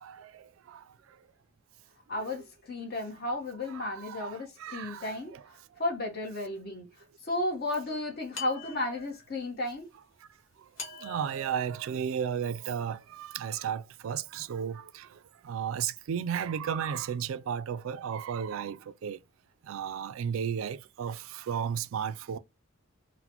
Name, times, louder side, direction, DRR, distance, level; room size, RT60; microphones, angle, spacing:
voice 1, 0.0-0.8 3.7-5.4 10.8-19.2 19.7-22.4, right 8 dB, 80° right, 0.3 m, -34 dB
voice 2, 2.1-5.3 5.8-6.8 7.3-9.9, left 2 dB, 50° left, 0.9 m, -33 dB
sound 1, 8.3-9.4 10.8-12.7, left 2 dB, 70° left, 1.2 m, -44 dB
3.9 x 2.1 x 2.8 m
head